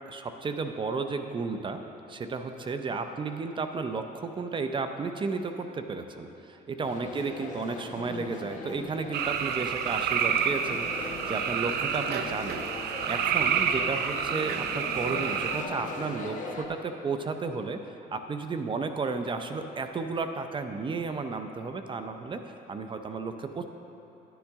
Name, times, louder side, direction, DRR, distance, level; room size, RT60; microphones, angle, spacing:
voice 1, 0.1-1.8 2.1-17.8 18.1-22.4 22.7-23.6, right 4 dB, 30° right, 7 dB, 0.6 m, -33 dB
sound 1, 6.8-16.6, left 3 dB, 50° left, 1.2 m, -40 dB
sound 2, 9.1-15.6, right 8 dB, 75° right, 0.6 m, -29 dB
10.5 x 10.0 x 3.6 m, 3.0 s
cardioid pair, 110°, 17 cm